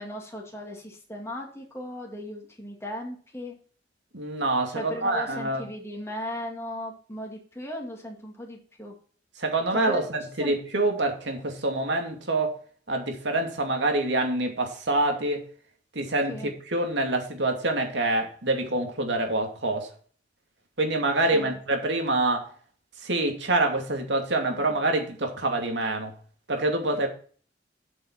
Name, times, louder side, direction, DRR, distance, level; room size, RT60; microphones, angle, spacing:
voice 1, 0.0-3.6 4.7-8.9 9.7-10.1 10.4-10.5 16.3-16.5 21.3-21.6 24.5-24.7, left 1 dB, 15° left, 2.4 m, -37 dB
voice 2, 4.1-5.6 9.4-12.6 12.9-15.5 15.9-16.4 16.7-19.9 20.8-22.5 23.0-26.1 26.5-27.1, right 2 dB, 70° right, 2.5 m, -26 dB
8.5 x 6.2 x 6.0 m
head